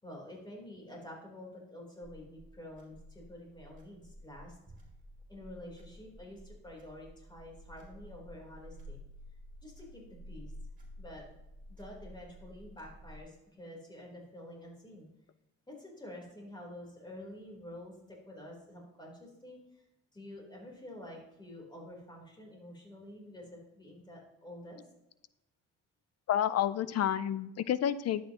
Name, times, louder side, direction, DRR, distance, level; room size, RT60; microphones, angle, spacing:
voice 1, 0.0-4.6 5.3-9.0 9.6-10.5 11.0-11.2 11.7-15.1 15.7-19.6 20.1-24.8, left 1 dB, 15° left, -1 dB, 3.8 m, -48 dB
sound 1, 2.0-13.2, equal, 25° right, 3.2 m, -52 dB
voice 2, 26.3-28.2, left 10 dB, 55° left, 16 dB, 0.5 m, -30 dB
11.5 x 8.6 x 3.0 m, 0.93 s
cardioid pair, 90°, 30 cm